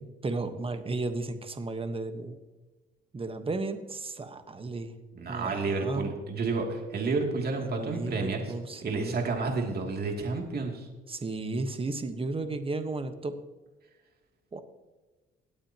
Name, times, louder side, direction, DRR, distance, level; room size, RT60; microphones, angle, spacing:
voice 1, 0.0-2.4 3.1-4.9 5.3-6.1 7.6-9.1 11.1-13.3 14.5-14.6, right 3 dB, 30° right, 8 dB, 1.3 m, -34 dB
voice 2, 5.1-8.5 8.8-10.9, right 3 dB, 50° right, 1 dB, 2.8 m, -30 dB
20.5 x 8.7 x 3.0 m, 1.2 s
cardioid pair, 90°, 20 cm